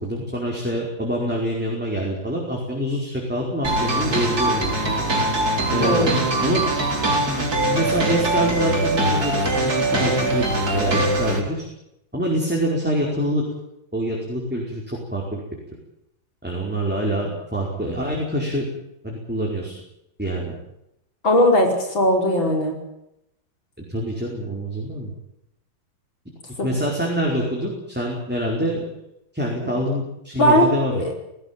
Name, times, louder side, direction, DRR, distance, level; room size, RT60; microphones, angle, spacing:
voice 1, 0.0-4.9 5.7-6.6 7.2-11.7 12.1-13.4 13.9-15.4 16.4-18.7 19.0-19.7 20.2-20.5 23.9-25.1 26.6-28.9 29.3-31.0, equal, 5° right, -2 dB, 4.9 m, -26 dB
sound 1, 3.6-11.4, right 1 dB, 50° right, 4.6 m, -22 dB
voice 2, 5.8-6.2 21.2-22.7 30.4-31.1, equal, 70° left, 2 dB, 5.9 m, -18 dB
20.0 x 18.0 x 9.1 m, 0.83 s
omnidirectional pair, 2.2 m